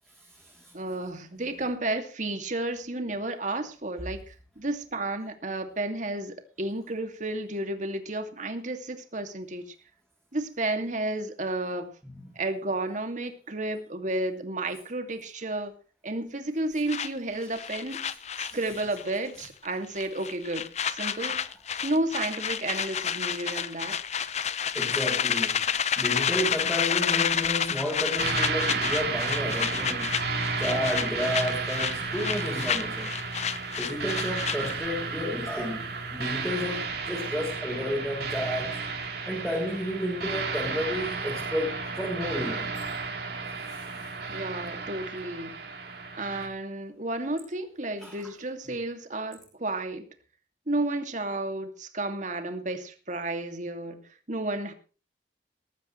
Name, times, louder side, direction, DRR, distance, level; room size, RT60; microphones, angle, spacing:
voice 1, 0.2-0.7 12.0-12.4 17.4-17.5 18.0-18.6 24.7-25.7 26.0-30.2 30.6-33.2 33.8-38.8 39.3-42.8 48.0-48.2, equal, 5° left, 0 dB, 3.4 m, -32 dB
voice 2, 0.7-9.7 10.3-11.9 12.3-15.7 16.0-18.1 18.4-21.4 21.8-24.0 44.3-45.6 46.1-50.1 50.7-54.0 54.3-54.7, right 2 dB, 45° right, 7 dB, 2.5 m, -32 dB
sound 1, 16.9-19.2 19.4-19.7 20.0-34.9, left 8 dB, 40° left, 0.8 m, -30 dB
sound 2, 28.2-46.5, right 4 dB, 60° right, 3.7 m, -32 dB
19.5 x 13.5 x 3.3 m, 0.37 s
head